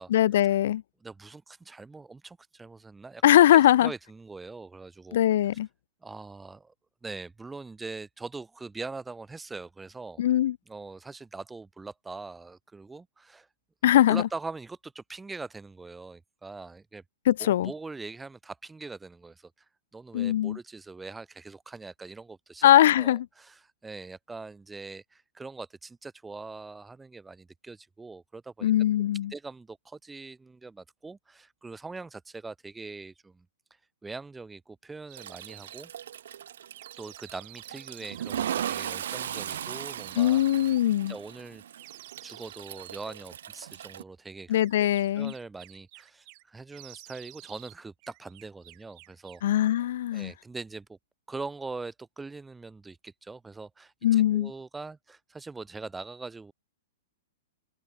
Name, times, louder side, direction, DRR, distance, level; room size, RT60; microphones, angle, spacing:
voice 1, 0.1-0.8 3.2-3.9 5.1-5.7 10.2-10.6 13.8-14.3 17.3-17.7 20.1-20.6 22.6-23.3 28.6-29.3 40.2-41.1 44.5-45.3 49.4-50.3 54.0-54.5, left 12 dB, 60° left, 0.3 m, -21 dB
voice 2, 1.0-3.2 3.5-5.2 6.0-6.7 7.0-10.2 10.7-13.5 14.1-17.0 17.4-19.5 19.9-22.7 23.0-28.7 29.3-33.4 34.0-35.9 37.0-40.7 41.1-41.6 42.2-44.9 45.1-49.4 50.1-51.0 51.3-56.5, right 3 dB, 5° right, 4.5 m, -42 dB
sound 1, 35.1-35.9 36.7-38.9 39.9-40.9 41.8-43.1 44.6-46.4 46.7-47.8 48.0-49.5, right 36 dB, 40° right, 5.7 m, -50 dB
Toilet flush, 35.2-44.0, right 10 dB, 70° right, 5.7 m, -38 dB
hypercardioid pair, 150°, 0 cm